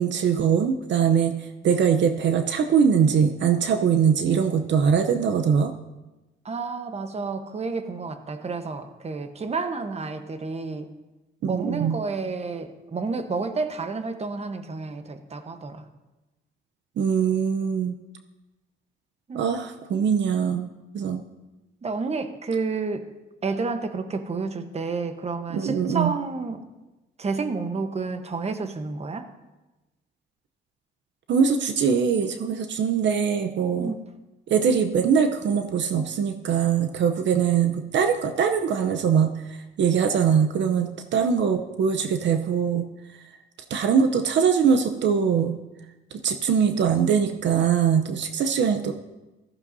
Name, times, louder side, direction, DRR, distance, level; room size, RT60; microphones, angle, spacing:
voice 1, 0.0-5.7 11.4-11.9 17.0-17.9 19.3-20.7 20.9-21.2 25.5-26.1 31.3-33.9 34.5-42.8 43.7-45.5 46.1-48.9, right 7 dB, 65° right, 7 dB, 0.8 m, -22 dB
voice 2, 6.4-10.9 11.5-15.9 19.3-19.5 21.8-23.1 23.4-26.6 27.2-29.3 33.8-34.0, right 4 dB, 30° right, 8 dB, 1.1 m, -30 dB
16.0 x 14.0 x 2.7 m, 1.1 s
cardioid pair, 90°, 20 cm